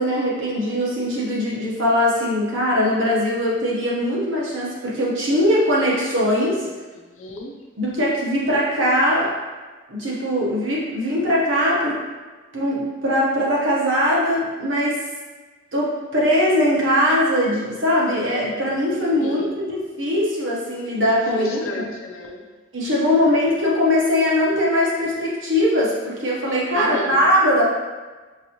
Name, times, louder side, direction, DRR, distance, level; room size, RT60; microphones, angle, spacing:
voice 1, 0.0-6.7 7.8-9.3 9.9-12.0 12.5-15.0 15.7-21.9 22.7-27.6, equal, 80° right, -5 dB, 1.1 m, -21 dB
voice 2, 6.9-7.5 19.2-19.5 21.4-22.4 26.7-27.3, left 2 dB, 90° left, 1 dB, 0.6 m, -32 dB
5.3 x 2.6 x 2.9 m, 1.3 s
head